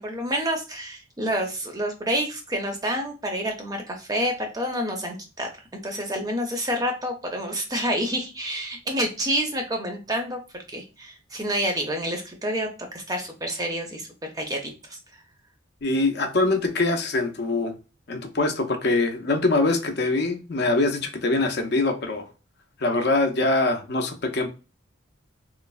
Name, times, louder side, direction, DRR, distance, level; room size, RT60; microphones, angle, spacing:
voice 1, 0.0-5.5 5.8-14.1 14.3-15.0, equal, 20° right, 0.5 m, -28 dB
voice 2, 15.8-17.7 18.1-22.3 22.8-24.5, left 2 dB, 55° left, 0.5 m, -23 dB
3.1 x 2.0 x 2.3 m
head